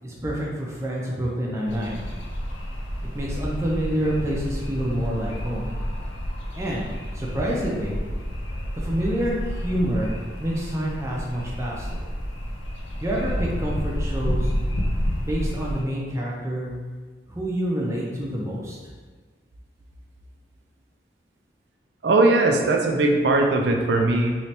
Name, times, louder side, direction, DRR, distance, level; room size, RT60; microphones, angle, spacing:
voice 1, 0.0-2.0 3.1-5.7 6.5-8.0 8.7-10.1 10.4-12.0 13.0-14.5 15.2-16.7 17.3-18.8, equal, 15° right, -4 dB, 0.6 m, -27 dB
sound 1, 1.7-15.8, equal, 90° left, 0.6 m, -30 dB
voice 2, 22.0-24.4, right 2 dB, 75° right, 2 dB, 0.4 m, -19 dB
3.2 x 3.1 x 2.8 m, 1.4 s
head